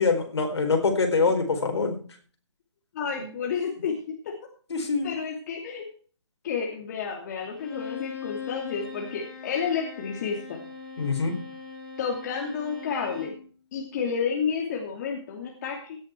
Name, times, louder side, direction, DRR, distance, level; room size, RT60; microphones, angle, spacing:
voice 1, 0.0-2.0 3.2-3.3 4.7-5.1 11.0-11.4, left 4 dB, 65° left, 4 dB, 4.3 m, -24 dB
voice 2, 2.9-4.3 5.0-5.9 6.4-10.6 12.0-13.3 13.7-16.0, left 6 dB, 35° left, 0 dB, 2.7 m, -30 dB
Bowed string instrument, 7.5-13.4, left 5 dB, 5° left, 2.9 m, -40 dB
17.5 x 7.9 x 4.5 m, 0.42 s
figure-of-eight pair, 150°, 15 cm